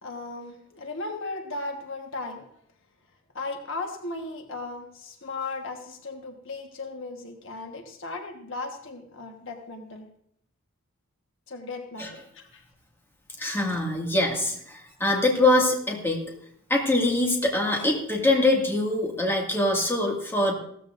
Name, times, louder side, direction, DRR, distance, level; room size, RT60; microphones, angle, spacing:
voice 1, 0.0-2.5 3.3-10.1 11.5-12.6 13.8-13.9, left 3 dB, 60° left, 3 dB, 1.4 m, -36 dB
voice 2, 13.4-16.2 16.7-20.5, left 2 dB, 10° left, -1 dB, 2.1 m, -23 dB
16.5 x 13.5 x 2.6 m, 0.69 s
head